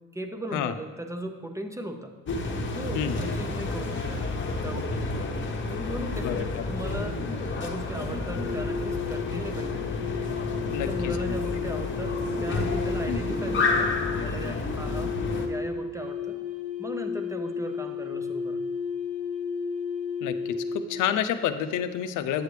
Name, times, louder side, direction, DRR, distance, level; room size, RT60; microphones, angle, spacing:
voice 1, 0.1-2.2 2.7-4.3 4.6-5.4 5.7-7.2 7.6-9.9 10.7-15.1 15.5-16.4 16.8-18.7, equal, 10° right, 6 dB, 0.7 m, -38 dB
sound 1, 2.3-15.5, left 3 dB, 40° left, 1.0 m, -30 dB
sound 2, 8.3-21.1, left 5 dB, 50° right, 1.2 m, -33 dB
voice 2, 10.7-11.1 13.1-13.2 20.2-22.4, left 9 dB, 85° left, 9 dB, 0.5 m, -29 dB
8.5 x 6.6 x 3.2 m, 1.5 s
cardioid pair, 90°, 30 cm